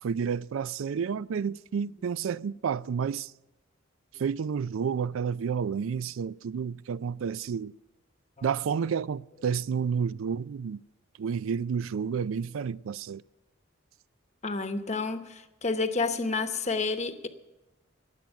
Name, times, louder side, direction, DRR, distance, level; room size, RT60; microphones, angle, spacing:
voice 1, 0.0-3.3 4.2-7.7 8.4-10.8 11.2-13.2, right 6 dB, 75° right, 0.4 m, -30 dB
voice 2, 14.4-17.3, left 3 dB, 35° left, 0.9 m, -30 dB
17.5 x 7.6 x 6.9 m
head